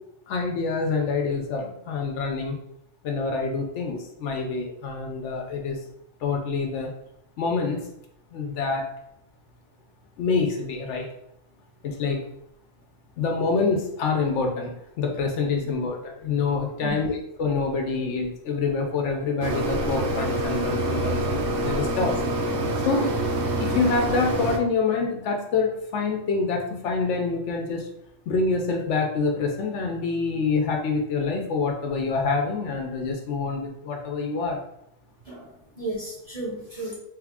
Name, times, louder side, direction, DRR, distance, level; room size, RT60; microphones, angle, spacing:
voice 1, 0.3-2.6 3.0-5.8 6.2-6.9 7.4-7.8 8.3-8.9 10.2-11.1 11.8-12.2 13.2-17.1 17.4-22.1 22.8-23.1 23.6-27.9 28.3-34.6, left 4 dB, 70° left, 2 dB, 0.9 m, -26 dB
sound 1, 19.4-24.6, right 1 dB, 65° right, 0.8 m, -26 dB
voice 2, 35.2-37.0, right 1 dB, 35° right, -5 dB, 0.7 m, -34 dB
3.2 x 2.4 x 3.5 m, 0.79 s
omnidirectional pair, 1.3 m